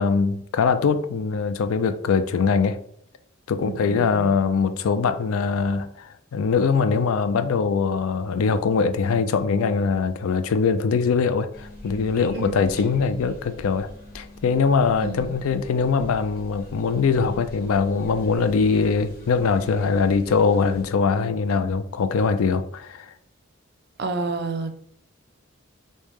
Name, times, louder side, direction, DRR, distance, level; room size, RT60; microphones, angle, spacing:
voice 1, 0.0-2.8 3.5-13.9 14.1-23.1, left 5 dB, 80° left, 0.4 m, -22 dB
voice 2, 3.6-4.4 12.3-12.7 15.0-15.4 24.0-24.7, right 3 dB, 50° right, 0.4 m, -30 dB
sound 1, 11.5-20.8, left 1 dB, 45° left, 1.1 m, -43 dB
3.1 x 2.7 x 3.5 m
head